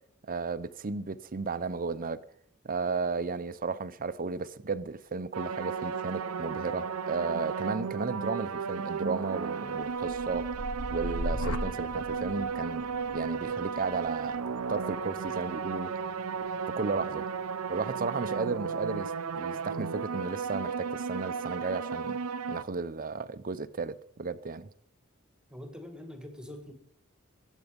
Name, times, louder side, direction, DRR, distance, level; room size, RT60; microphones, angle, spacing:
voice 1, 0.3-2.2 2.6-10.5 10.9-12.9 13.1-14.4 14.7-16.0 16.7-17.3 17.7-22.2 22.5-24.7, right 4 dB, 40° right, 0.7 m, -34 dB
sound 1, 5.3-22.6, right 5 dB, 85° right, 0.6 m, -34 dB
sound 2, 9.9-17.8 18.3-18.8, equal, 80° left, 1.4 m, -40 dB
voice 2, 25.5-26.7, left 1 dB, 5° right, 2.1 m, -44 dB
22.5 x 8.3 x 5.2 m
head